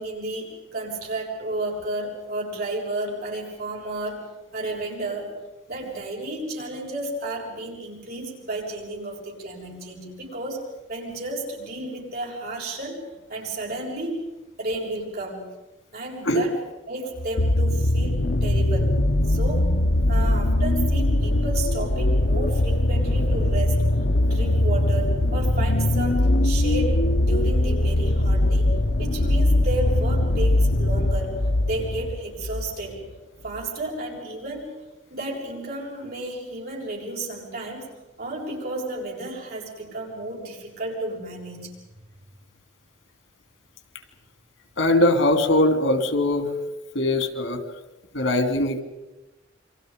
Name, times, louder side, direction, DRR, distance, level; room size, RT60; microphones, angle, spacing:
voice 1, 0.0-5.3 5.7-13.0 13.3-14.2 14.6-15.5 15.9-16.6 16.9-19.0 19.2-19.7 20.1-23.8 24.2-31.4 31.7-33.0 33.4-34.8 35.1-37.9 38.2-41.7, right 2 dB, 50° right, -2 dB, 7.2 m, -32 dB
sound 1, 17.2-32.8 33.6-33.7, left 1 dB, 60° left, 0.9 m, -21 dB
voice 2, 44.8-46.5 46.9-47.6 48.1-48.8, left 1 dB, 90° left, 8 dB, 2.8 m, -21 dB
28.5 x 24.5 x 5.3 m, 1.0 s
head